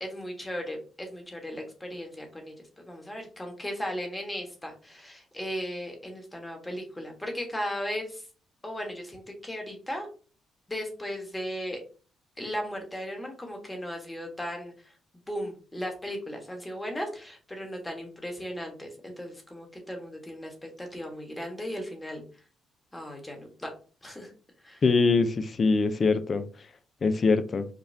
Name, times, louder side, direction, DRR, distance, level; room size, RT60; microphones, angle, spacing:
voice 1, 0.0-8.2 8.6-10.1 10.7-11.8 12.4-14.9 15.3-22.2 22.9-23.7 24.0-24.3 24.6-24.8, equal, 15° left, 1.3 m, -36 dB
voice 2, 24.8-26.4 27.0-27.6, left 4 dB, 40° left, 0.5 m, -23 dB
5.1 x 2.3 x 2.6 m
cardioid pair, 90°, 0 cm